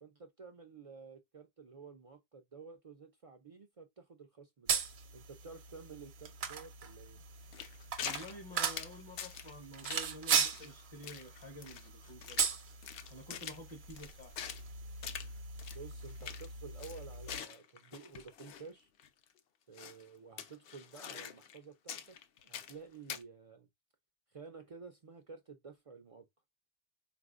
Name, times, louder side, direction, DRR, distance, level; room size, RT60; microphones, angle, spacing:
voice 1, 0.0-4.8 5.1-7.2 15.7-18.9 19.7-22.2 22.4-23.7 24.3-26.3, right 5 dB, 50° right, 0.4 m, -52 dB
sound 1, 4.7-17.4, right 7 dB, 75° right, 0.9 m, -38 dB
sound 2, 7.5-8.3 8.6-9.5 9.8-10.1 10.3-10.7 11.0-12.6 12.8-14.6 15.0-15.3 15.6-15.8 16.0-16.5 16.8-18.7 19.0-19.1 19.8-20.0 20.4-21.6 21.9-22.8 23.1-23.2, left 8 dB, 70° left, 0.7 m, -44 dB
voice 2, 8.0-12.4 13.1-14.3, equal, 30° left, 0.7 m, -50 dB
4.1 x 2.5 x 2.3 m
omnidirectional pair, 1.1 m